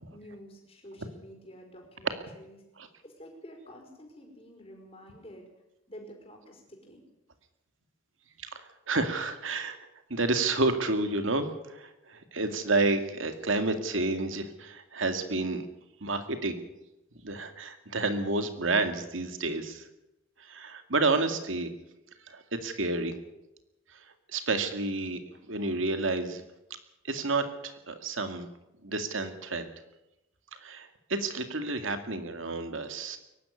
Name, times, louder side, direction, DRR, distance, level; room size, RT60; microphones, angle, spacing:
voice 1, 0.1-2.6 3.0-5.4 5.9-7.0, equal, 30° left, 2 dB, 5.1 m, -49 dB
voice 2, 8.4-9.8 10.1-15.7 16.0-16.6 17.2-19.9 20.4-21.7 22.3-23.1 23.9-25.2 25.5-26.4 27.0-28.5 28.8-29.6 30.5-33.2, right 3 dB, 75° right, 8 dB, 2.2 m, -30 dB
23.0 x 12.0 x 9.7 m, 0.92 s
head